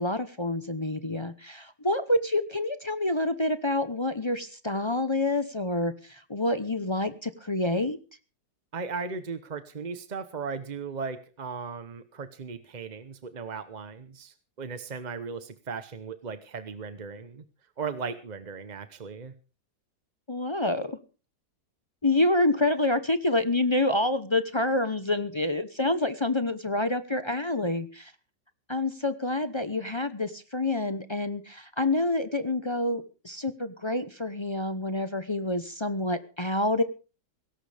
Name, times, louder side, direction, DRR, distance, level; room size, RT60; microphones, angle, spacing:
voice 1, 0.0-8.0 20.3-21.0 22.0-28.1 28.7-36.8, left 2 dB, 25° left, 10 dB, 0.6 m, -27 dB
voice 2, 8.7-17.4 17.8-19.3, right 5 dB, 35° right, 10 dB, 0.7 m, -37 dB
18.5 x 17.0 x 3.4 m, 0.36 s
omnidirectional pair, 1.9 m